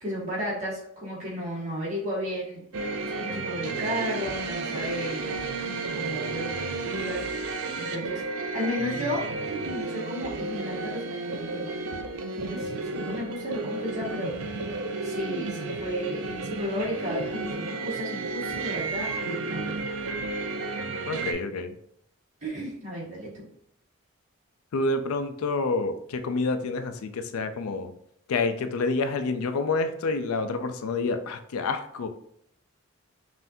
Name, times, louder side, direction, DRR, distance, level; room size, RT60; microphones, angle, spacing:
voice 1, 0.0-2.6 3.1-5.3 5.9-7.5 7.7-8.2 8.5-11.7 12.3-14.3 15.0-19.8 22.4-23.4, equal, 35° right, -6 dB, 1.5 m, -33 dB
sound 1, 2.7-21.3, right 3 dB, 70° right, 0.4 m, -32 dB
voice 2, 21.1-21.7 24.7-27.9 28.3-32.1, left 3 dB, 80° left, 8 dB, 0.4 m, -28 dB
5.5 x 2.5 x 2.6 m, 0.69 s
head